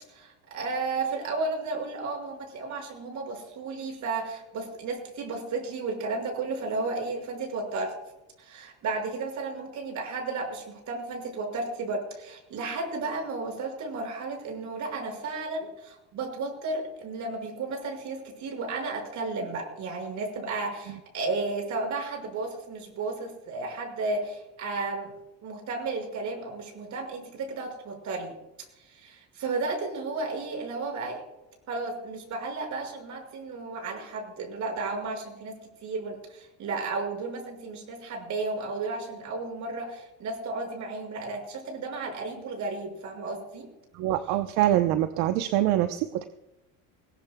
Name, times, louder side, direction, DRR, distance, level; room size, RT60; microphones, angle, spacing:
voice 1, 0.1-7.9 8.4-25.1 25.4-28.3 28.8-31.2 31.7-43.7, right 3 dB, 50° right, 3 dB, 6.0 m, -33 dB
voice 2, 43.9-46.2, right 13 dB, 75° right, 8 dB, 0.9 m, -24 dB
21.0 x 18.0 x 2.3 m, 0.95 s
cardioid pair, 120°, 37 cm